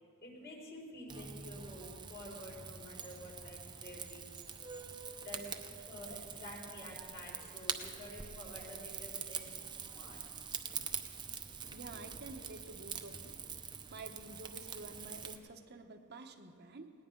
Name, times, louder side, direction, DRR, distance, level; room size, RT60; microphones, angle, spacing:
voice 1, 0.2-4.3 5.1-10.2, left 1 dB, 50° left, -3 dB, 4.7 m, -50 dB
Rain / Fire, 1.1-15.4, right 6 dB, 20° right, 0.7 m, -45 dB
voice 2, 11.7-13.3 13.9-16.9, right 2 dB, 55° right, 5 dB, 1.0 m, -50 dB
19.5 x 18.5 x 3.8 m, 2.3 s
head